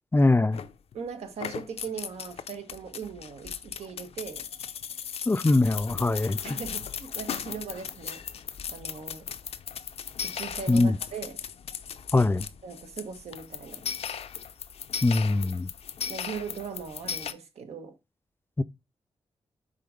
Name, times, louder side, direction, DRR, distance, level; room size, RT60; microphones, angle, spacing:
voice 1, 0.1-0.6 5.3-6.4 10.7-11.0 12.1-12.5 15.0-15.7 18.6-18.7, left 2 dB, 20° left, 0.4 m, -22 dB
sound 1, 0.5-1.0 1.3-17.3, left 7 dB, 75° left, 0.6 m, -37 dB
voice 2, 0.9-4.4 6.4-8.2 8.7-9.3 10.2-11.4 12.6-13.8 16.1-17.9, right 6 dB, 85° right, 1.3 m, -39 dB
5.7 x 3.8 x 5.0 m
cardioid pair, 65°, 10 cm